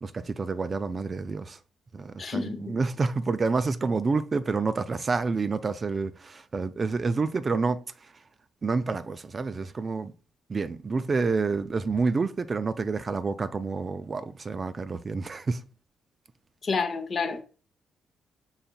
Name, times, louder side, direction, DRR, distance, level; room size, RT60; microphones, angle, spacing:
voice 1, 0.0-1.6 1.9-8.1 8.6-10.1 10.5-15.6, right 4 dB, 35° right, 0.3 m, -28 dB
voice 2, 2.2-2.8 16.6-17.4, left 4 dB, 45° left, 0.6 m, -29 dB
5.6 x 3.9 x 2.2 m
cardioid pair, 90°, 0 cm